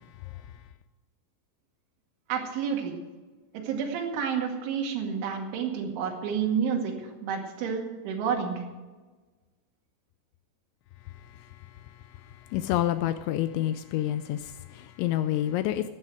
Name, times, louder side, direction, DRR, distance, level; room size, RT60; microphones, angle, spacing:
voice 1, 2.3-3.0 3.6-6.9 7.2-8.6, right 7 dB, 70° right, 1 dB, 4.4 m, -29 dB
voice 2, 12.5-15.9, left 13 dB, 85° left, 11 dB, 2.6 m, -28 dB
15.5 x 11.0 x 4.7 m, 1.3 s
omnidirectional pair, 5.8 m